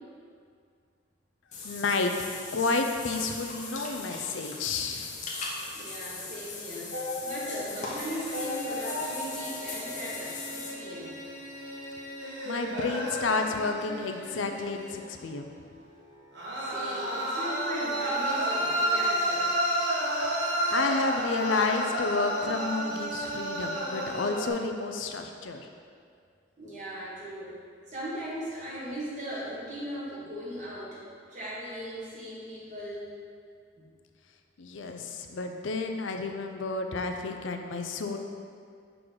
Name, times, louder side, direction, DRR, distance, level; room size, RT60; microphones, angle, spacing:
Water / Bathtub (filling or washing), 1.5-10.7, left 3 dB, 40° left, 0.8 m, -39 dB
voice 1, 1.6-2.1 2.5-5.2 12.4-15.5 20.2-20.4 20.7-25.7 34.6-38.2, left 3 dB, 75° left, 4 dB, 0.5 m, -30 dB
voice 2, 5.7-6.9 7.2-11.2 16.7-19.5 26.6-27.5 27.9-31.0 31.3-33.1 33.8-33.9, equal, 40° right, -7 dB, 1.6 m, -38 dB
sound 1, 6.9-11.1, left 2 dB, 85° right, 1.1 m, -37 dB
sound 2, 7.6-15.0 16.3-24.5, right 1 dB, 60° right, 1.2 m, -32 dB
6.1 x 3.8 x 4.7 m, 2.2 s
head